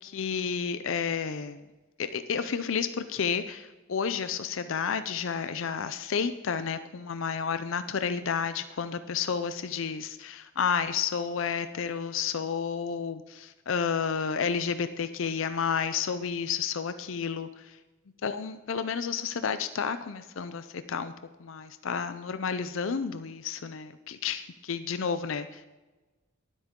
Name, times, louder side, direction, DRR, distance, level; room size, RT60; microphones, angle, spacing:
voice 1, 0.0-1.6 2.0-17.7 18.2-21.1 21.4-25.6, left 6 dB, 65° left, 11 dB, 0.5 m, -31 dB
19.0 x 8.1 x 3.7 m, 1.2 s
head